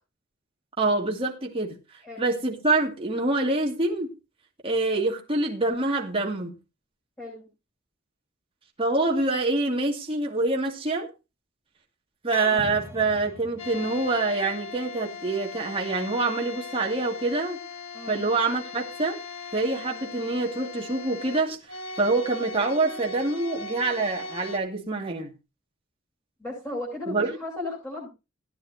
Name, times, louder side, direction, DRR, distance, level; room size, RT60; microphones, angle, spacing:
voice 1, 0.8-1.7 2.2-4.1 4.6-6.5 8.8-11.1 12.2-17.6 18.1-19.2 19.5-21.6 22.0-25.3 27.1-27.4, right 3 dB, 25° right, 0 dB, 2.4 m, -26 dB
sound 1, 12.3-14.3, equal, 10° right, 1.3 m, -41 dB
sound 2, 13.6-24.6, left 4 dB, 85° left, 1.9 m, -39 dB
voice 2, 17.9-18.3 26.4-28.1, left 2 dB, 10° left, -6 dB, 7.8 m, -35 dB
17.0 x 10.5 x 2.8 m, 0.28 s
head